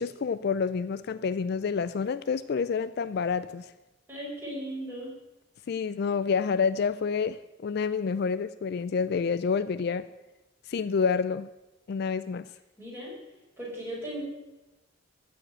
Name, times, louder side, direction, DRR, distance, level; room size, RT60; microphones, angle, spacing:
voice 1, 0.0-3.7 5.7-10.0 10.7-11.5 11.9-12.4, left 5 dB, 55° left, 14 dB, 0.3 m, -28 dB
voice 2, 4.1-5.1 12.8-13.1 13.6-14.2, right 1 dB, 10° right, -6 dB, 5.2 m, -37 dB
14.0 x 5.1 x 8.6 m, 1.0 s
head